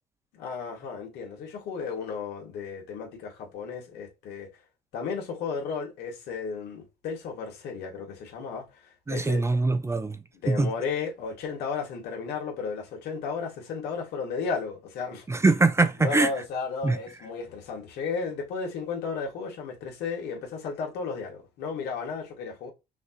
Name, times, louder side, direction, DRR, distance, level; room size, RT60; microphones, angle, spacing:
voice 1, 0.3-4.5 4.9-8.7 9.1-9.4 10.4-15.3 16.0-22.7, left 5 dB, 75° left, 2.1 m, -34 dB
voice 2, 9.1-10.2 10.5-10.7 15.3-16.3 16.8-17.0, right 3 dB, 15° right, 0.6 m, -22 dB
5.7 x 3.0 x 2.5 m
cardioid pair, 110°, 17 cm